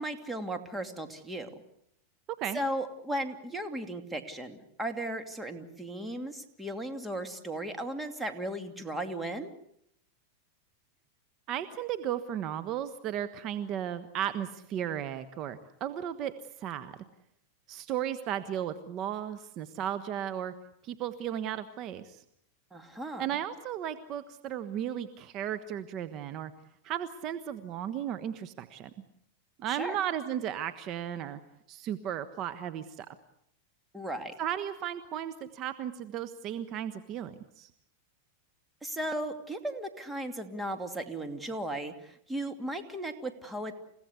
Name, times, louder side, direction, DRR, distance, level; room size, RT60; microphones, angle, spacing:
voice 1, 0.0-1.6 2.5-9.5 22.7-23.2 29.7-30.0 33.9-34.3 38.8-43.7, right 1 dB, 5° right, 5 dB, 2.6 m, -36 dB
voice 2, 11.5-16.3 16.6-16.9 17.7-20.5 20.8-22.2 23.2-26.5 26.8-28.9 29.6-31.4 31.7-33.1 34.4-37.7, right 10 dB, 40° right, 13 dB, 1.3 m, -35 dB
29.5 x 17.0 x 8.3 m, 0.73 s
hypercardioid pair, 120°, 0 cm